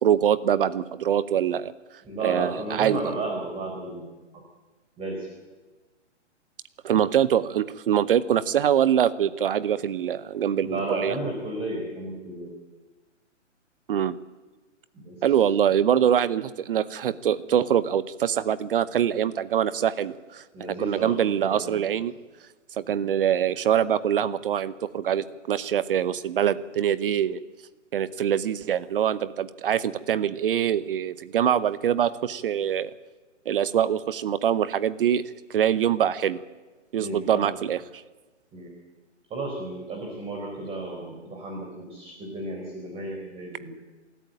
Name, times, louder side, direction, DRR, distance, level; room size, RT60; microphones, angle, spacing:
voice 1, 0.0-1.7 2.2-3.0 6.8-11.2 13.9-14.2 15.2-22.1 22.8-27.4 27.9-32.9 33.5-36.4 36.9-38.0, right 9 dB, 45° right, 15 dB, 0.9 m, -24 dB
voice 2, 2.0-4.1 5.0-5.3 10.6-12.5 15.0-15.2 20.5-21.8 37.0-37.5 38.5-38.7 39.3-43.7, right 2 dB, 15° right, 1 dB, 4.1 m, -33 dB
27.5 x 14.0 x 9.0 m, 1.3 s
figure-of-eight pair, 130°, 37 cm